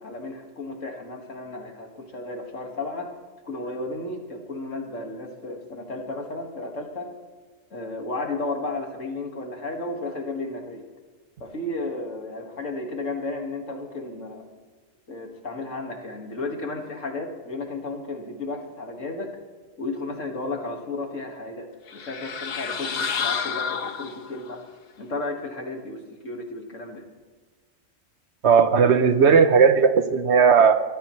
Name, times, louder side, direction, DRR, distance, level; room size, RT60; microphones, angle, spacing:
voice 1, 0.0-3.1 3.5-7.1 7.7-10.8 11.4-14.4 15.1-19.4 19.8-24.6 25.0-27.0, left 2 dB, 75° left, 2 dB, 2.4 m, -33 dB
sound 1, 21.9-24.5, left 6 dB, 50° left, 1.0 m, -30 dB
voice 2, 28.4-30.8, right 6 dB, 60° right, 10 dB, 1.1 m, -16 dB
23.0 x 15.0 x 3.2 m, 1.3 s
omnidirectional pair, 1.3 m